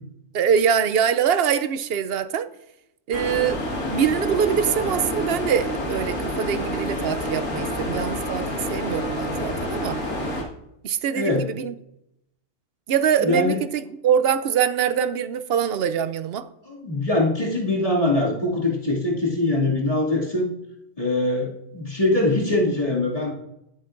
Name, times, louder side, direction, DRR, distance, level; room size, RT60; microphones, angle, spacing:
voice 1, 0.3-2.5 3.1-3.6 3.9-10.0 10.8-11.7 12.9-16.5, right 8 dB, 60° right, 0.7 m, -23 dB
sound 1, 3.1-10.4, left 1 dB, 85° left, 2.1 m, -28 dB
voice 2, 11.1-11.4 13.2-13.6 16.6-20.5 21.0-23.3, left 2 dB, 25° left, 2.4 m, -22 dB
15.0 x 8.1 x 2.5 m
omnidirectional pair, 1.3 m